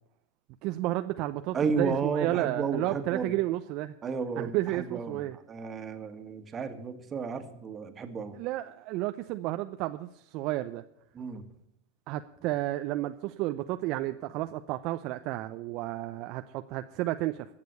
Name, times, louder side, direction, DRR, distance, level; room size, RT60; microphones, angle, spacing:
voice 1, 0.6-3.9 4.4-5.4 8.3-10.8 12.1-17.5, right 16 dB, 50° right, 8 dB, 0.6 m, -32 dB
voice 2, 1.5-3.3 4.0-5.2 5.5-8.4 11.2-11.4, right 5 dB, 30° right, 8 dB, 1.8 m, -32 dB
16.0 x 6.8 x 8.0 m, 0.76 s
hypercardioid pair, 95°, 0 cm